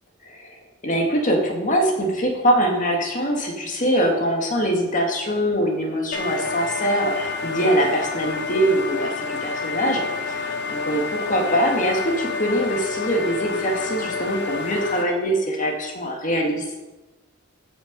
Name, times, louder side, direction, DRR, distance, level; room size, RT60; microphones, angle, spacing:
voice 1, 0.8-16.6, equal, 40° left, 1 dB, 2.0 m, -23 dB
sound 1, 6.1-15.0, left 4 dB, 60° left, 1.3 m, -29 dB
14.5 x 5.8 x 5.3 m, 1.1 s
head